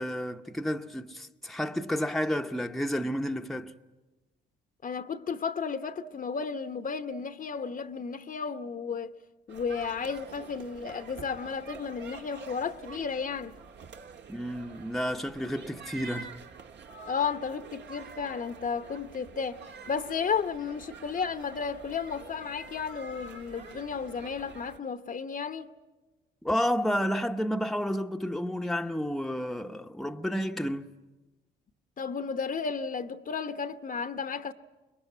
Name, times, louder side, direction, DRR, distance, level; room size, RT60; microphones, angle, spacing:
voice 1, 0.0-3.7 14.3-16.3 26.4-30.9, equal, ahead, 0.9 m, -31 dB
voice 2, 4.8-9.1 9.5-13.5 17.1-19.6 19.9-25.7 32.0-34.5, left 6 dB, 45° left, 0.9 m, -33 dB
sound 1, 9.5-24.8, right 4 dB, 60° right, 1.6 m, -47 dB
25.0 x 22.0 x 9.4 m
cardioid pair, 90°, 20 cm